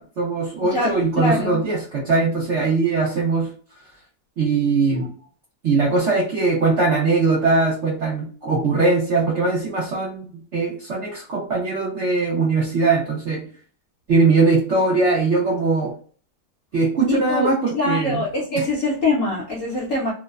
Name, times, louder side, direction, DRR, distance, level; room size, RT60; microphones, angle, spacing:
voice 1, 0.0-3.5 4.4-5.1 5.6-13.5 14.1-16.0 16.7-18.2 18.6-18.7, right 3 dB, 70° right, -3 dB, 0.6 m, -21 dB
voice 2, 0.7-1.7 17.1-20.1, left 2 dB, 65° left, -4 dB, 0.8 m, -24 dB
3.1 x 2.0 x 2.2 m, 0.43 s
omnidirectional pair, 2.0 m